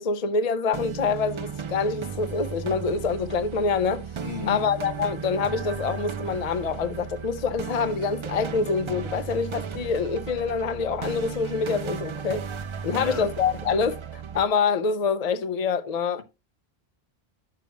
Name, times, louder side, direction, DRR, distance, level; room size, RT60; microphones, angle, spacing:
voice 1, 0.0-4.0 4.5-12.5 12.8-16.2, left 5 dB, 45° left, 0.7 m, -26 dB
sound 1, 0.7-14.5, right 6 dB, 50° right, 0.3 m, -35 dB
voice 2, 4.2-4.6 12.9-13.3, left 5 dB, 75° left, 1.4 m, -34 dB
10.5 x 6.7 x 3.0 m
omnidirectional pair, 1.1 m